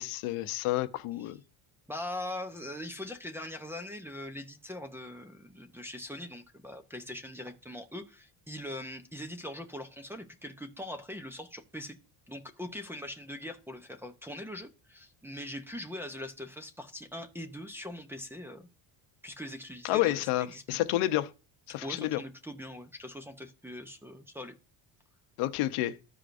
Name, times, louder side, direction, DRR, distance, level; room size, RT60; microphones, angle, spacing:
voice 1, 0.0-1.4 19.8-21.3 21.7-22.2 25.4-26.0, left 15 dB, 85° left, 0.9 m, -29 dB
voice 2, 1.9-12.0 12.3-18.7 19.2-20.8 21.8-24.6, left 1 dB, 5° right, 0.6 m, -42 dB
14.5 x 4.9 x 2.5 m
cardioid pair, 155°, 50 cm